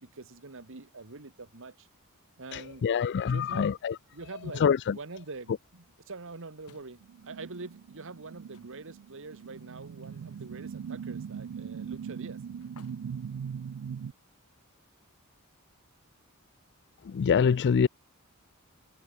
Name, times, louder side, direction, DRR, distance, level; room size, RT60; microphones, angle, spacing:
voice 1, 0.0-1.9 2.4-2.8 3.3-3.7 4.1-4.6 4.9-5.5 6.1-12.4, right 3 dB, 60° right, 1.5 m, -44 dB
voice 2, 2.5-4.0 4.4-5.0 17.0-17.9, left 6 dB, 50° left, 0.4 m, -25 dB
sound 1, 6.7-14.4, left 3 dB, 85° left, 3.2 m, -64 dB
sound 2, 7.0-14.1, right 7 dB, 85° right, 0.4 m, -40 dB
head